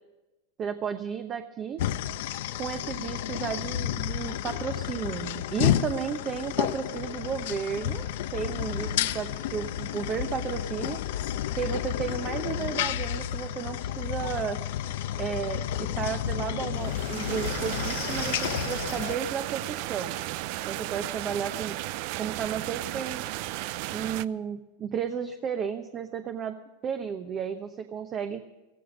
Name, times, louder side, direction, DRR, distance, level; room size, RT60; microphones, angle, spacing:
voice 1, 0.6-1.8 2.5-11.0 11.5-14.6 15.2-20.2 20.7-21.8 22.2-23.2 23.9-28.4, right 7 dB, 30° right, 7 dB, 1.0 m, -33 dB
sound 1, 1.8-19.1, left 11 dB, 70° left, 0.8 m, -31 dB
sound 2, 16.8-24.3, right 17 dB, 55° right, 0.5 m, -34 dB
15.5 x 15.0 x 5.2 m, 1.0 s
supercardioid pair, 125°, 0 cm